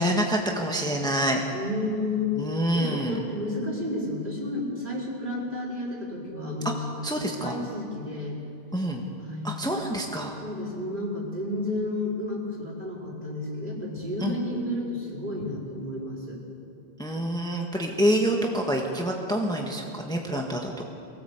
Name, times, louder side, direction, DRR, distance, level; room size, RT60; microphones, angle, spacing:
voice 1, 0.0-1.4 2.4-3.2 7.0-7.5 8.7-9.0 9.4-10.4 14.2-14.3 17.0-20.8, equal, 5° left, 1 dB, 1.6 m, -27 dB
voice 2, 1.5-2.3 2.7-8.4 9.2-9.6 10.4-16.4, left 2 dB, 50° right, -4 dB, 4.5 m, -31 dB
23.5 x 17.5 x 8.1 m, 2.5 s
omnidirectional pair, 1.1 m